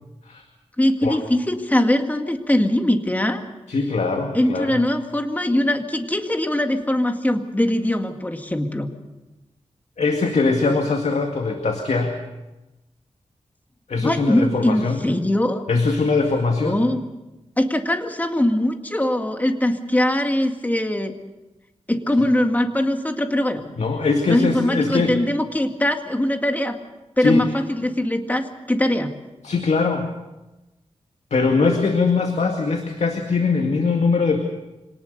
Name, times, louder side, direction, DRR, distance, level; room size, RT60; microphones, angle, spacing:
voice 1, 0.8-3.4 4.3-8.9 14.0-15.6 16.6-17.0 17.6-21.1 21.9-23.6 24.3-26.8 27.2-29.1, left 1 dB, 15° left, 5 dB, 2.0 m, -21 dB
voice 2, 3.7-4.8 10.0-12.2 13.9-15.0 15.7-16.8 23.8-25.1 27.2-27.5 29.4-30.1 31.3-34.4, left 4 dB, 70° left, 4 dB, 2.1 m, -21 dB
25.5 x 18.5 x 6.7 m, 1.0 s
wide cardioid pair, 95°, 12 cm